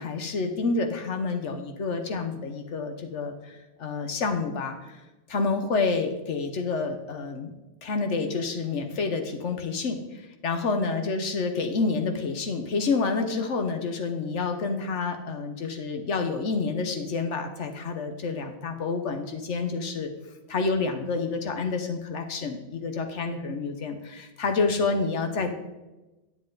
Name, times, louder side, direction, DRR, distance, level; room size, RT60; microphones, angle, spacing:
voice 1, 0.0-5.0 5.3-7.5 7.8-20.1 20.5-25.5, left 4 dB, 75° left, 5 dB, 1.1 m, -28 dB
9.5 x 7.7 x 3.8 m, 1.1 s
omnidirectional pair, 1.2 m